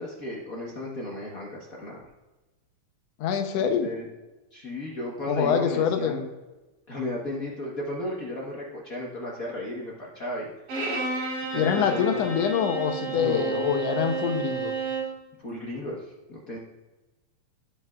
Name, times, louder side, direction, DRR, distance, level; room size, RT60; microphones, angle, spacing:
voice 1, 0.0-2.1 3.5-4.1 4.5-6.3 6.9-10.5 11.5-12.2 13.1-13.8 15.4-16.6, left 1 dB, 55° left, -4 dB, 1.0 m, -34 dB
voice 2, 3.2-3.9 5.3-6.2 11.6-14.8, left 7 dB, 70° left, 5 dB, 1.8 m, -25 dB
Bowed string instrument, 10.7-15.2, right 4 dB, 75° right, 3.6 m, -31 dB
16.0 x 5.4 x 2.4 m, 1.1 s
omnidirectional pair, 3.5 m